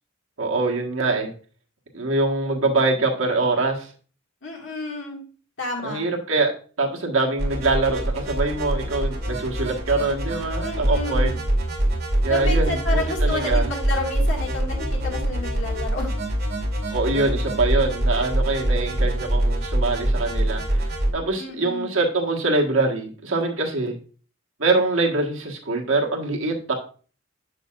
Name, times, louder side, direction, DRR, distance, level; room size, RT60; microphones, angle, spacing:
voice 1, 0.4-1.3 1.9-3.9 5.8-6.5 6.8-11.4 12.2-13.7 16.9-20.8 21.1-23.9 24.6-26.7, right 3 dB, 85° right, 0 dB, 1.6 m, -24 dB
voice 2, 4.4-5.2 5.6-6.0 10.6-11.3 12.3-16.1 21.4-21.9, left 2 dB, 65° left, 0 dB, 2.1 m, -30 dB
sound 1, 7.4-21.1, right 1 dB, 50° right, 2.2 m, -24 dB
7.3 x 6.6 x 2.5 m, 0.39 s
head